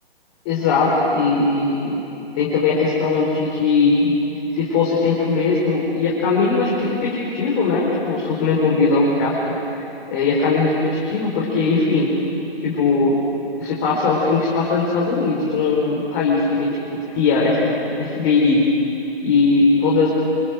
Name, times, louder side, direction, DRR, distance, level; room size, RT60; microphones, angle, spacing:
voice 1, 0.4-2.0 2.3-4.1 4.5-9.5 10.1-12.1 12.6-13.2 13.6-18.6 19.2-20.1, left 3 dB, 25° left, -5 dB, 4.5 m, -19 dB
27.5 x 25.5 x 7.8 m, 2.9 s
hypercardioid pair, 150°, 30 cm